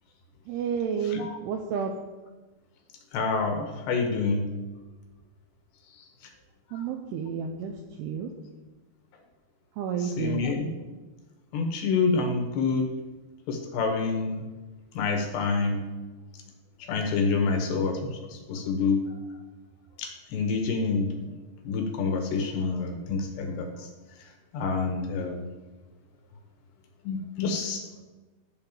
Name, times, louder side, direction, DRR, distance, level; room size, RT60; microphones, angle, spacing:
voice 1, 0.5-1.9 6.7-8.3 9.8-10.5, right 7 dB, 85° right, 3 dB, 2.3 m, -31 dB
voice 2, 3.1-4.5 10.0-10.7 11.5-12.9 13.5-14.4 15.0-15.9 16.9-19.0 20.0-21.1 21.7-23.9 24.5-25.4 27.0-27.8, left 4 dB, 70° left, 3 dB, 2.9 m, -27 dB
12.0 x 4.1 x 7.2 m, 1.2 s
omnidirectional pair, 5.4 m